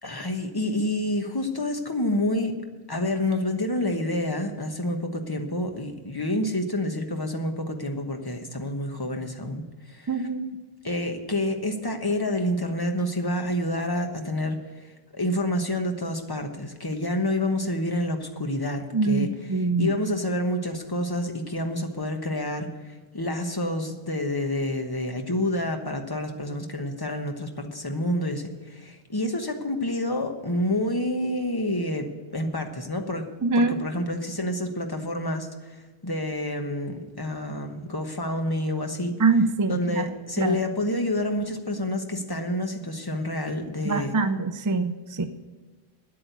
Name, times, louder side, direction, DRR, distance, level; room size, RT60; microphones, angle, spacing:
voice 1, 0.0-2.6 2.9-10.3 10.8-14.6 15.1-22.7 23.1-39.1 39.7-44.1, left 1 dB, 20° left, 4 dB, 1.1 m, -28 dB
voice 2, 10.1-10.6 18.9-19.9 33.4-33.7 39.2-40.1 40.4-40.6 43.8-45.3, right 3 dB, 30° right, 9 dB, 0.3 m, -24 dB
9.8 x 8.6 x 8.1 m, 1.4 s
omnidirectional pair, 1.1 m